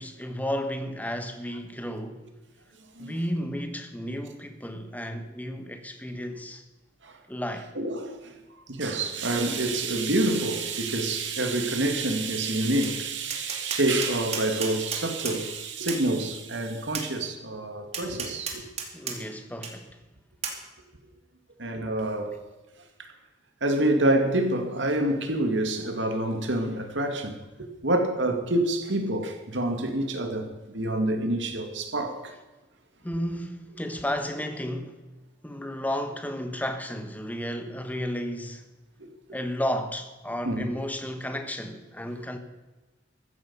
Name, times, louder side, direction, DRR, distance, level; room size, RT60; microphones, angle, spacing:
voice 1, 0.0-2.2 3.0-6.6 7.3-7.7 18.9-20.0 33.0-35.0 35.4-38.6 39.3-42.4, equal, 10° left, 1.4 m, -33 dB
voice 2, 7.8-8.2 8.7-18.6 21.6-22.4 23.0-23.1 23.6-27.4 27.8-32.3 39.0-39.1 40.5-40.7, right 2 dB, 75° right, 2.3 m, -27 dB
Tap, 12.8-12.9 13.3-15.4 15.9-16.0 16.9-17.1 17.9-19.2 19.6-19.7 20.4-20.6, right 6 dB, 35° right, 2.4 m, -33 dB
15.0 x 14.5 x 5.6 m
head